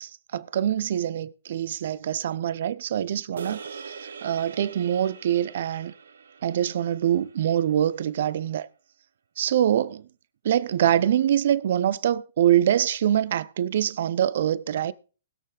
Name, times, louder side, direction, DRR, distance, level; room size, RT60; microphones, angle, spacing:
voice 1, 0.0-3.8 4.2-5.9 6.4-8.7 9.4-10.0 10.4-14.9, right 10 dB, 60° right, 0.7 m, -24 dB
sound 1, 3.4-7.8, right 6 dB, 75° right, 1.1 m, -42 dB
20.0 x 6.6 x 3.9 m
hypercardioid pair, 130°, 0 cm